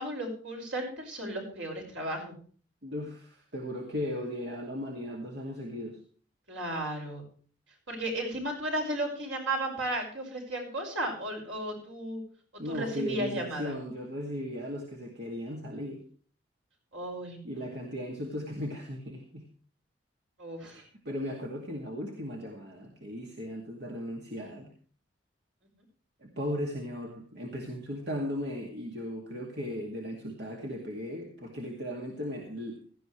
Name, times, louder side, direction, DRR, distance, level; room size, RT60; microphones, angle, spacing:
voice 1, 0.0-2.3 6.5-7.2 7.9-12.2 12.5-13.7 16.9-17.7 20.4-20.8, right 1 dB, 80° right, 1 dB, 5.9 m, -34 dB
voice 2, 2.8-6.0 12.6-16.0 17.4-19.5 20.6-24.7 26.2-32.8, equal, 60° right, 1 dB, 2.3 m, -37 dB
17.0 x 13.5 x 3.2 m, 0.42 s
head